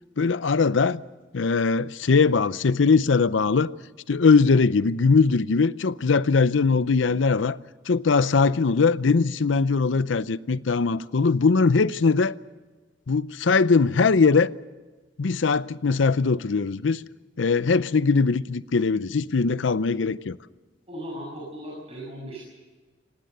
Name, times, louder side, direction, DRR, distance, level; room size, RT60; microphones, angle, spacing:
voice 1, 0.2-1.0 1.3-3.7 4.1-7.6 7.9-12.3 13.1-14.5 15.2-17.0 17.4-20.4, left 4 dB, 80° left, 0.6 m, -21 dB
voice 2, 20.9-22.4, equal, 35° right, 7.1 m, -37 dB
25.5 x 18.0 x 6.7 m
head